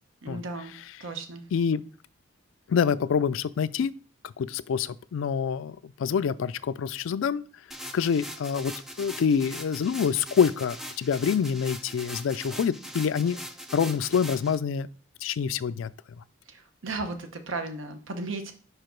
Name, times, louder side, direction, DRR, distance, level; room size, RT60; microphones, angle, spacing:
voice 1, 0.2-0.7 1.0-1.4 16.5-18.5, right 3 dB, 90° right, 1.0 m, -35 dB
voice 2, 1.5-1.8 2.7-3.9 4.4-7.4 7.9-8.7 9.0-13.4 13.7-14.9 15.2-15.9, left 6 dB, 90° left, 0.3 m, -26 dB
sound 1, 7.7-14.6, equal, ahead, 0.4 m, -41 dB
5.2 x 4.8 x 4.5 m
head